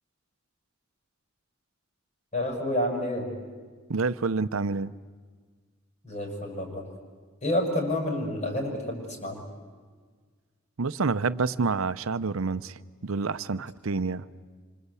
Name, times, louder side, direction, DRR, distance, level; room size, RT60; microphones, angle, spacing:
voice 1, 2.3-3.3 6.0-6.9 7.4-9.4, left 1 dB, 35° left, 2 dB, 6.8 m, -29 dB
voice 2, 3.9-4.9 10.8-14.3, right 4 dB, 80° right, 14 dB, 0.7 m, -28 dB
27.0 x 26.0 x 8.3 m, 1.5 s
head